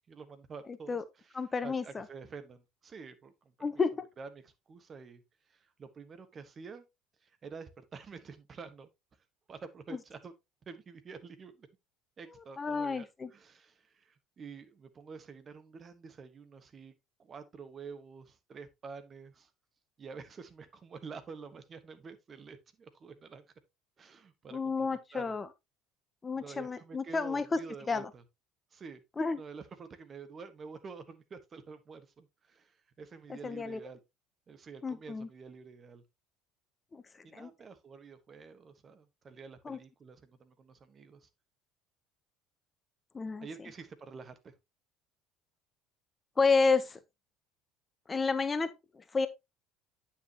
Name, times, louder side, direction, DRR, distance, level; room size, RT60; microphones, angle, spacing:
voice 1, 0.1-1.0 1.3-3.8 4.2-5.2 5.5-6.8 7.2-8.9 9.5-10.3 10.7-11.7 12.2-16.9 17.2-19.5 20.0-23.4 24.0-25.3 26.4-28.2 28.7-29.0 29.4-34.0 34.5-36.0 37.2-41.3 43.4-44.5, right 5 dB, 35° right, 1.3 m, -48 dB
voice 2, 1.3-2.0 3.6-4.1 12.6-13.3 24.5-25.5 26.2-27.6 27.9-28.1 29.2-29.4 33.3-33.8 34.8-35.3 36.9-37.0 37.3-37.5 39.6-39.8 43.1-43.5 46.4-47.0 48.1-49.3, left 4 dB, 25° left, 0.8 m, -30 dB
9.3 x 5.8 x 2.9 m
figure-of-eight pair, 60°, 0 cm